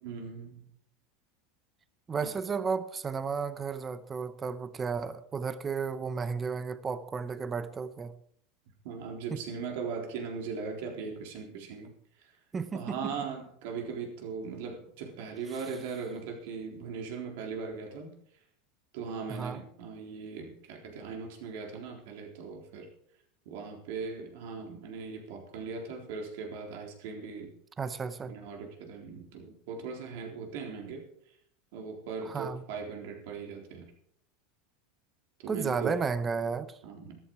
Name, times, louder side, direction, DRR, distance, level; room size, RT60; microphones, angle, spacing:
voice 1, 0.0-0.7 2.1-2.3 8.8-11.9 12.7-18.1 18.9-22.9 23.5-27.5 28.3-31.0 31.7-33.9 35.4-35.9 36.8-37.2, right 5 dB, 65° right, 3.9 m, -39 dB
voice 2, 2.1-8.1 9.3-9.4 12.5-13.2 15.5-15.7 19.3-19.6 27.8-28.4 32.2-32.6 35.5-36.8, right 5 dB, 15° right, 0.8 m, -33 dB
13.5 x 13.0 x 4.8 m
supercardioid pair, 160°, 0 cm